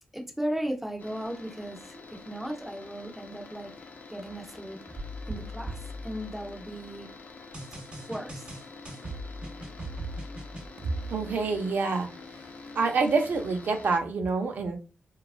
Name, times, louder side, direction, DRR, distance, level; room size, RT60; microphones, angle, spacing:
voice 1, 0.1-4.8 5.3-7.1 8.1-8.6, equal, 5° right, 2 dB, 0.5 m, -36 dB
sound 1, 1.0-14.0, left 4 dB, 60° left, 0.4 m, -47 dB
sound 2, 5.0-6.8 7.5-10.7, right 1 dB, 35° right, 0.8 m, -39 dB
voice 2, 11.1-12.1 12.7-14.8, right 4 dB, 65° right, 4 dB, 0.6 m, -27 dB
2.9 x 2.3 x 2.4 m, 0.33 s
wide cardioid pair, 140°, 3 cm